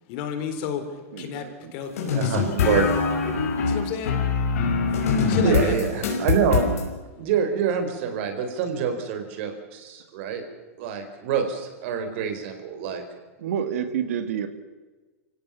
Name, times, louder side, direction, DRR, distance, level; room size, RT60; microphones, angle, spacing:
voice 1, 0.1-2.8 3.7-4.2 5.2-6.0, left 7 dB, 45° left, 7 dB, 3.6 m, -32 dB
voice 2, 1.1-1.7 13.4-14.5, right 8 dB, 70° right, 9 dB, 2.1 m, -29 dB
sound 1, 2.0-6.8, left 5 dB, 75° left, 5.2 m, -23 dB
voice 3, 2.1-2.9 5.4-6.7 7.2-10.4 10.8-13.0, right 7 dB, 55° right, 6 dB, 4.4 m, -26 dB
24.5 x 17.0 x 7.1 m, 1.3 s
hypercardioid pair, 140°, 8 cm